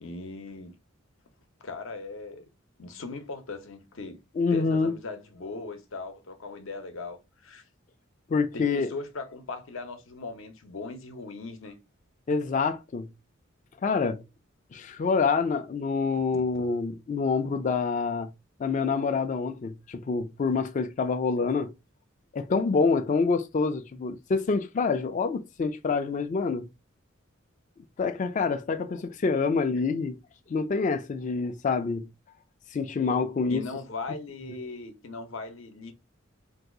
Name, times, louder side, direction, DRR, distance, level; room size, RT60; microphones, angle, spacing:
voice 1, 0.0-0.7 1.6-2.4 2.8-4.2 4.5-7.6 8.5-11.8 16.3-16.8 28.9-29.0 29.8-30.0 33.5-35.9, left 3 dB, 75° left, 0.7 m, -39 dB
voice 2, 4.4-4.9 8.3-8.9 12.3-13.1 13.8-14.2 14.7-18.3 18.6-21.7 22.3-26.7 28.0-30.2 30.5-32.1 32.7-33.6, left 4 dB, 40° left, 0.3 m, -26 dB
2.7 x 2.3 x 3.7 m
head